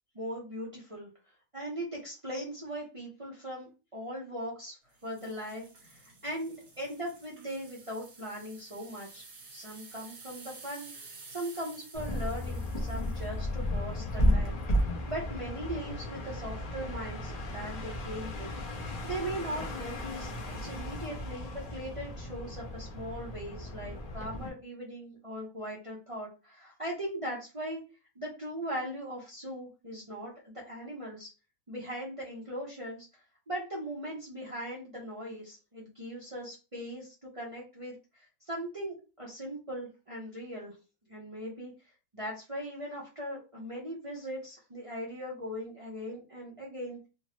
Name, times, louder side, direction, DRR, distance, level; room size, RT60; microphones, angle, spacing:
voice 1, 0.1-1.1 1.5-9.3 9.5-14.6 15.1-18.5 19.0-20.3 20.6-27.8 28.2-31.3 31.7-33.1 33.5-40.7 41.1-41.7 42.1-47.0, equal, 45° right, -4 dB, 0.4 m, -39 dB
sound 1, 5.0-14.9 15.4-15.6 16.2-16.3, right 3 dB, 60° right, 1.3 m, -52 dB
sound 2, 11.9-24.5, left 1 dB, 45° left, 0.5 m, -34 dB
3.4 x 2.0 x 3.0 m, 0.31 s
omnidirectional pair, 1.7 m